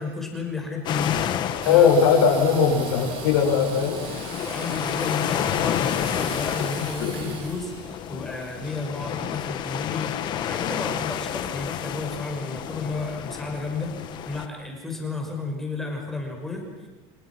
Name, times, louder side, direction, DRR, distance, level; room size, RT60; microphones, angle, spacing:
voice 1, 0.0-1.3 1.6-1.9 4.4-14.0 14.3-16.7, left 3 dB, 5° left, 1 dB, 5.8 m, -32 dB
sound 1, 0.8-14.5, left 10 dB, 35° left, 1.6 m, -30 dB
voice 2, 1.6-4.0 6.8-7.3, left 6 dB, 85° left, 2 dB, 6.7 m, -20 dB
Engine / Sawing, 1.6-11.1, right 7 dB, 45° right, 3.5 m, -41 dB
29.0 x 28.5 x 6.2 m, 1.2 s
cardioid pair, 170°, 13 cm